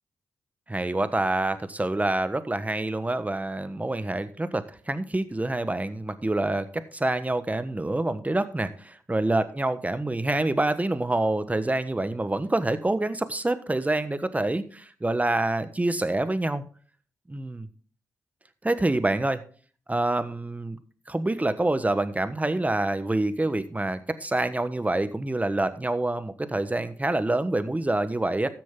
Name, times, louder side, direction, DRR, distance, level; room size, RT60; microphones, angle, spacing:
voice 1, 0.7-16.6 17.3-17.7 18.6-19.4 19.9-20.8 21.1-28.5, right 2 dB, 20° right, 12 dB, 1.3 m, -26 dB
13.0 x 7.5 x 3.8 m, 0.42 s
supercardioid pair, 40°, 7 cm